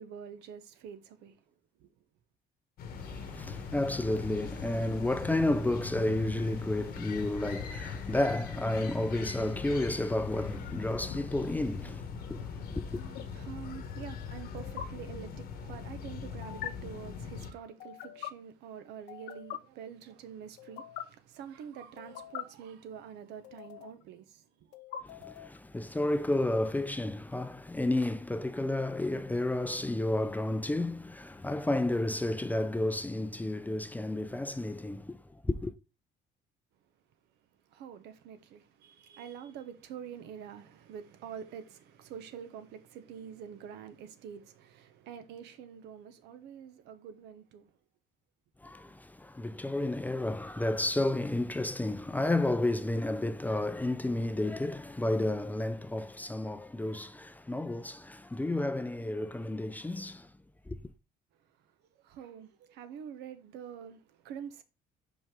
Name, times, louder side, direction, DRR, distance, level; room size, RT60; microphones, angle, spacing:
voice 1, 0.0-1.4 1.8-1.9 13.0-24.4 37.7-47.7 62.0-64.6, right 8 dB, 80° right, 0.8 m, -46 dB
sound 1, 2.8-17.5, left 6 dB, 65° left, 1.1 m, -41 dB
voice 2, 3.0-13.0 25.0-35.7 48.6-60.3 60.7-60.8, left 1 dB, 10° left, 0.4 m, -31 dB
sound 2, 10.9-11.2 12.9-13.2 14.6-14.8 16.4-16.7 17.8-18.3 19.1-19.6 20.6-21.0 22.0-22.4 23.4-24.0 24.7-25.6, left 11 dB, 85° left, 0.7 m, -42 dB
5.3 x 5.1 x 3.6 m
cardioid pair, 110°, 17 cm